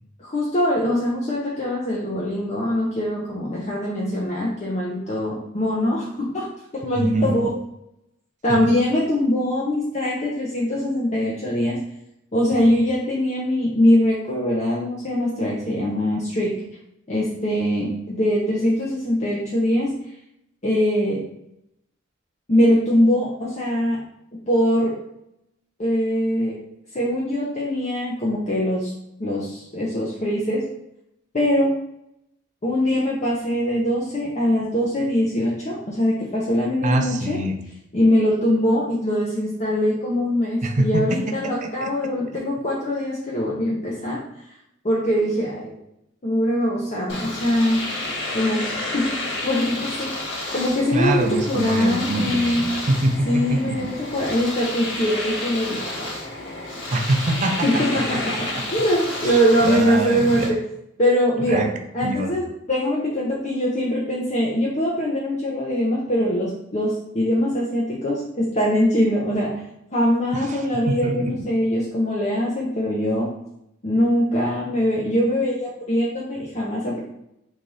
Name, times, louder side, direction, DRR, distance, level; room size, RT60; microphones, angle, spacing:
voice 1, 0.2-6.5 6.7-7.5 8.4-11.8 12.3-16.5 17.1-19.9 20.6-21.2 22.5-24.0 24.5-25.0 25.8-26.6 26.9-28.9 29.2-30.7 31.3-31.7 32.6-37.4 37.9-44.2 44.8-45.8 46.2-47.9 48.3-49.1 49.4-52.7 53.3-56.1 57.6-58.5 58.7-60.6 61.0-61.7 61.9-69.5 69.9-73.4 73.8-77.0, equal, 35° left, -4 dB, 0.6 m, -22 dB
voice 2, 7.0-7.5 8.5-8.6 12.5-12.6 36.8-37.6 40.6-41.9 42.3-42.4 50.9-53.8 56.9-58.2 58.5-58.6 59.2-60.5 61.4-61.7 62.0-62.3 70.3-71.5, right 2 dB, 40° right, 5 dB, 0.4 m, -25 dB
Domestic sounds home sounds, 47.1-60.5, left 2 dB, 65° left, 1.3 m, -31 dB
3.2 x 2.5 x 3.9 m, 0.80 s
head